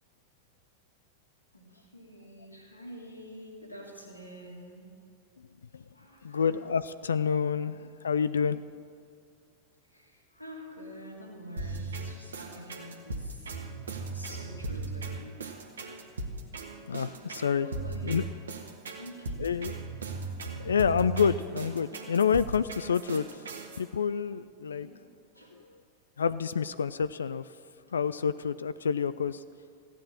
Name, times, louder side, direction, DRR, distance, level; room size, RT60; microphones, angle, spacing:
voice 1, 1.5-4.9 5.9-6.5 9.8-13.6 14.1-15.5 17.2-19.7 20.3-20.5 24.6-24.9 25.3-25.5 27.8-27.9, equal, 85° left, -2 dB, 2.7 m, -48 dB
voice 2, 6.2-8.6 16.9-17.7 18.0-18.2 19.4-19.8 20.6-23.3 23.8-24.9 26.2-27.5 27.9-29.4, left 6 dB, 70° left, 15 dB, 0.3 m, -28 dB
sound 1, 11.6-23.8, right 3 dB, 70° right, 1.5 m, -37 dB
15.5 x 9.0 x 7.3 m, 2.3 s
figure-of-eight pair, 90°, 0 cm